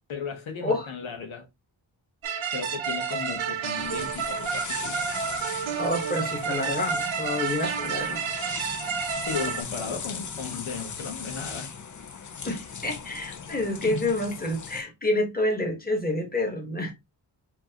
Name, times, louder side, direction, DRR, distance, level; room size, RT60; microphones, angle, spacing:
voice 1, 0.1-1.4 2.5-5.0 9.3-11.7 13.9-14.1, left 5 dB, 85° left, 1.1 m, -35 dB
sound 1, 2.2-9.6, right 7 dB, 85° right, 0.9 m, -30 dB
sound 2, 3.8-14.8, left 6 dB, 40° left, 0.6 m, -39 dB
voice 2, 5.8-8.3 12.4-16.9, left 1 dB, 20° left, 1.4 m, -28 dB
4.5 x 2.7 x 2.9 m
wide cardioid pair, 80°, 47 cm